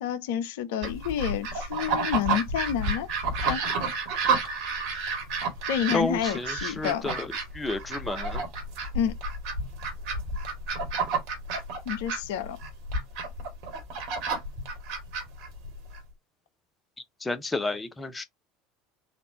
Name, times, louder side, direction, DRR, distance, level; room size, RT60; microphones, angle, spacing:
voice 1, 0.0-3.1 3.4-3.6 5.7-7.1 8.9-9.1 11.9-12.6, left 9 dB, 70° left, 0.5 m, -29 dB
sound 1, 0.8-16.0, right 3 dB, 60° right, 1.6 m, -31 dB
voice 2, 5.9-7.3 7.5-8.4 17.2-18.2, left 2 dB, 15° left, 0.8 m, -31 dB
4.2 x 2.5 x 2.9 m
hypercardioid pair, 75°, 0 cm